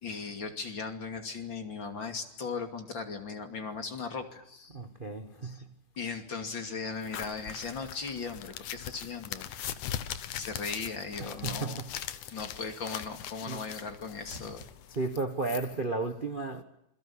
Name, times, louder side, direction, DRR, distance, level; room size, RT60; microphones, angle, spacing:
voice 1, 0.0-4.8 5.4-5.6 6.0-9.5 10.3-11.8 12.3-14.7, left 4 dB, 40° left, 3.0 m, -38 dB
voice 2, 4.7-5.6 11.2-11.9 13.5-13.6 14.9-16.6, right 3 dB, 60° right, 0.5 m, -33 dB
sound 1, 7.0-15.2, left 11 dB, 85° left, 2.7 m, -40 dB
27.5 x 22.5 x 8.7 m
omnidirectional pair, 3.5 m